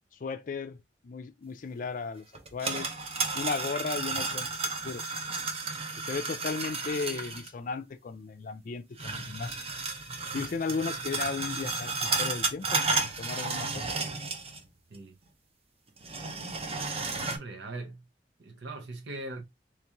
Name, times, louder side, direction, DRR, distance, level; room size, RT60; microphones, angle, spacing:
voice 1, 0.1-2.3 2.5-2.9 3.3-5.1 5.9-9.6 10.3-13.8, left 4 dB, 50° left, 0.4 m, -35 dB
sound 1, 2.3-7.5 9.0-14.7 14.9-15.0 16.0-17.4, right 3 dB, 35° right, 0.7 m, -33 dB
voice 2, 17.3-18.0 18.4-19.4, right 2 dB, 80° right, 0.8 m, -40 dB
3.2 x 3.0 x 3.4 m
head